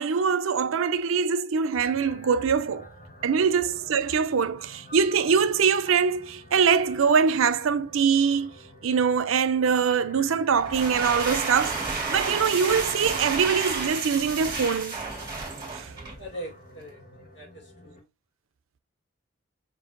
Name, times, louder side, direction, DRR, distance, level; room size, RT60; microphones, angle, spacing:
voice 1, 0.0-2.9 3.2-8.5 8.8-11.8 12.1-15.0 15.7-15.9, right 6 dB, 85° right, 0.5 m, -23 dB
sound 1, 1.8-18.0, left 1 dB, 40° left, 1.3 m, -48 dB
sound 2, 10.5-16.3, right 3 dB, 20° right, 1.8 m, -31 dB
voice 2, 16.2-17.0 17.3-18.1, equal, 60° left, 1.5 m, -41 dB
6.0 x 2.7 x 2.5 m
head